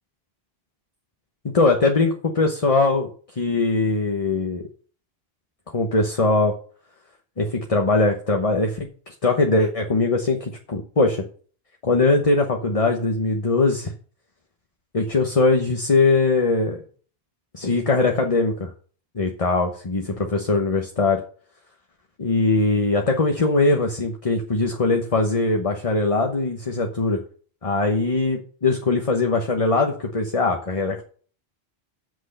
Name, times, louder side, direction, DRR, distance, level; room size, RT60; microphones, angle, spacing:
voice 1, 1.5-3.1 3.4-4.6 5.7-6.5 7.4-11.2 11.8-13.9 14.9-16.8 17.5-18.7 19.1-21.2 22.2-27.2 27.6-31.0, left 3 dB, 35° left, 3 dB, 1.1 m, -21 dB
7.8 x 6.2 x 6.7 m, 0.43 s
omnidirectional pair, 1.1 m